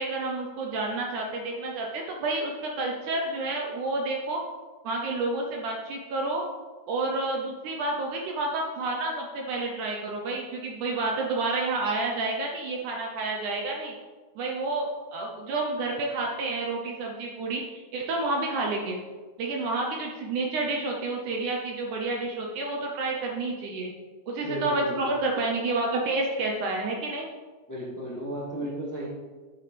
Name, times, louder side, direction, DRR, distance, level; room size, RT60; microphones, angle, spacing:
voice 1, 0.0-4.4 4.8-6.4 6.9-13.9 14.4-19.0 19.4-23.9 24.3-27.3, right 2 dB, 70° right, 0 dB, 2.0 m, -29 dB
voice 2, 24.4-25.1 27.7-29.1, right 1 dB, 5° left, -6 dB, 1.4 m, -34 dB
11.0 x 7.2 x 3.3 m, 1.4 s
omnidirectional pair, 4.1 m